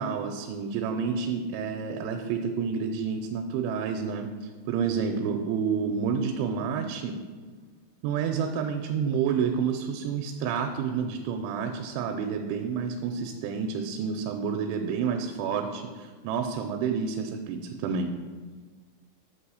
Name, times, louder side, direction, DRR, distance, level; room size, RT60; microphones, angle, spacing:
voice 1, 0.0-7.2 8.0-18.1, right 6 dB, 85° right, 4 dB, 2.8 m, -29 dB
8.1 x 3.0 x 6.2 m, 1.5 s
omnidirectional pair, 5.4 m